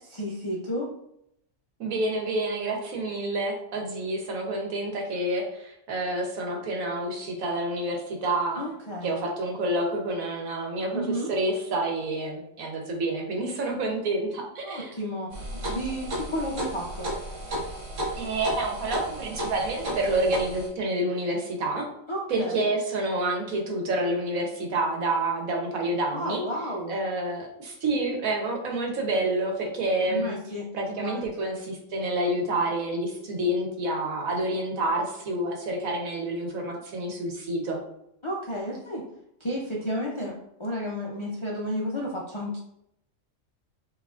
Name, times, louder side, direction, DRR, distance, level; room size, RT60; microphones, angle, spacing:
voice 1, 0.0-0.9 8.6-9.2 10.9-11.3 14.6-15.3 15.7-17.1 22.1-22.7 26.1-26.9 30.1-31.6 38.2-39.1 39.4-42.6, equal, 50° left, -3 dB, 0.3 m, -32 dB
voice 2, 1.8-8.6 9.0-14.9 18.2-21.9 22.3-26.4 26.9-30.4 30.7-37.8, right 1 dB, 85° right, 1 dB, 1.4 m, -28 dB
sound 1, 15.3-20.7, right 1 dB, 65° right, 1.5 m, -33 dB
6.0 x 2.9 x 2.4 m, 0.78 s
omnidirectional pair, 1.4 m